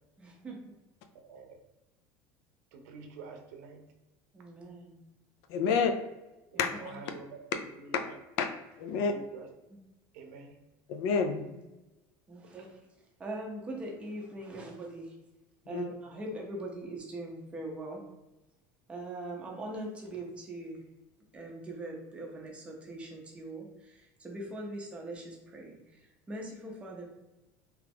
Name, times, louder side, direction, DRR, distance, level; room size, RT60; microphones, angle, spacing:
voice 1, 0.2-0.6 4.3-5.0 12.3-12.8 13.2-15.1 15.7-18.0 18.9-20.8 21.3-25.8 26.3-27.0, right 1 dB, 15° right, -1 dB, 0.6 m, -41 dB
voice 2, 2.7-3.8 5.7-5.8 6.5-7.3 7.8-8.1 9.1-9.5 10.1-10.5, right 4 dB, 85° right, 4 dB, 0.6 m, -47 dB
voice 3, 5.5-5.9 6.6-7.0 8.0-9.1 10.9-11.4 15.7-15.8, left 5 dB, 65° left, 6 dB, 0.4 m, -29 dB
2.9 x 2.3 x 3.4 m, 1.0 s
cardioid pair, 170°, 8 cm